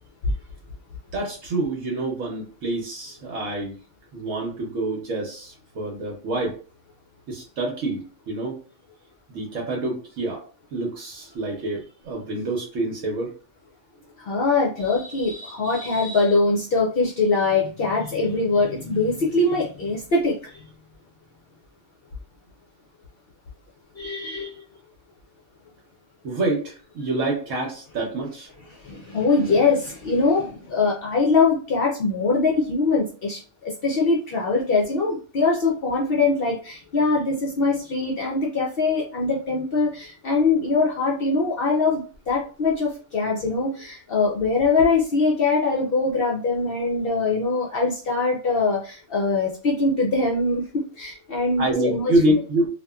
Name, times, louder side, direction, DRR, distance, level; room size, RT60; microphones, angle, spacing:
voice 1, 1.1-3.8 4.1-6.6 7.3-8.6 9.3-10.4 10.7-13.3 26.2-28.5 51.6-52.7, right 1 dB, 75° right, -1 dB, 1.1 m, -26 dB
voice 2, 14.2-20.4 24.0-24.5 28.8-33.4 33.6-52.1, left 3 dB, 60° left, -2 dB, 0.7 m, -22 dB
2.8 x 2.4 x 2.2 m, 0.38 s
omnidirectional pair, 1.4 m